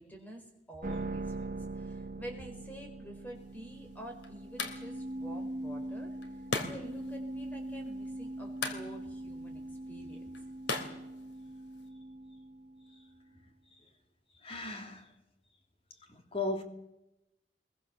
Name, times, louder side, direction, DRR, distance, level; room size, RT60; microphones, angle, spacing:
voice 1, 0.0-10.3, equal, 10° left, 4.7 m, -48 dB
sound 1, 0.8-13.1, right 2 dB, 50° right, 1.3 m, -42 dB
sound 2, 3.4-11.9, left 3 dB, 85° left, 3.1 m, -42 dB
voice 2, 14.4-15.1 16.1-16.6, left 2 dB, 30° left, 2.8 m, -36 dB
24.0 x 22.0 x 7.1 m
head